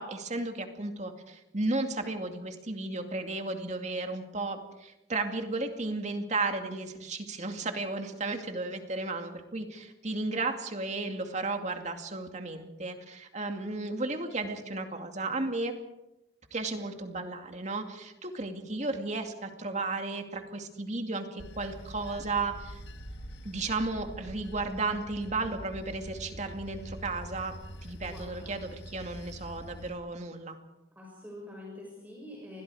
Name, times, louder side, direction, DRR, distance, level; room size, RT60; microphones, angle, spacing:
voice 1, 0.0-15.8 16.5-22.8 23.4-27.5 27.8-30.6, right 3 dB, 40° right, 5 dB, 2.4 m, -34 dB
Bell / Train, 21.4-29.9, equal, 70° left, 2.0 m, -45 dB
voice 2, 28.0-28.6 30.9-32.6, left 1 dB, 10° right, -3 dB, 6.2 m, -46 dB
29.0 x 21.5 x 4.9 m, 0.93 s
head